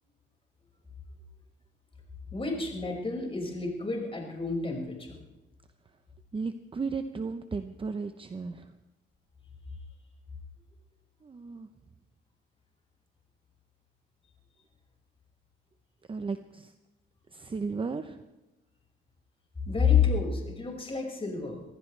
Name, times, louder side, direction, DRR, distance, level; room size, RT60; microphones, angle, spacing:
voice 1, 2.3-5.2 19.7-21.6, left 6 dB, 30° left, -1 dB, 5.7 m, -29 dB
voice 2, 6.3-8.6 11.2-11.7 16.1-16.7 17.3-18.2, right 4 dB, 25° right, 9 dB, 0.8 m, -35 dB
25.0 x 15.5 x 3.4 m, 1.0 s
cardioid pair, 90°, 20 cm